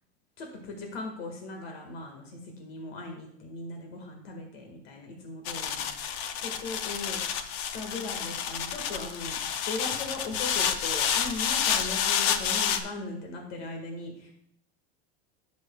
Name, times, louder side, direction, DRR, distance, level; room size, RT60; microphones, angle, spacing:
voice 1, 0.4-7.2 7.6-9.4 9.7-14.3, left 3 dB, 75° left, 2 dB, 1.7 m, -39 dB
sound 1, 5.4-12.8, left 8 dB, 30° left, 0.3 m, -29 dB
15.0 x 6.2 x 2.2 m, 0.69 s
supercardioid pair, 180°, 31 cm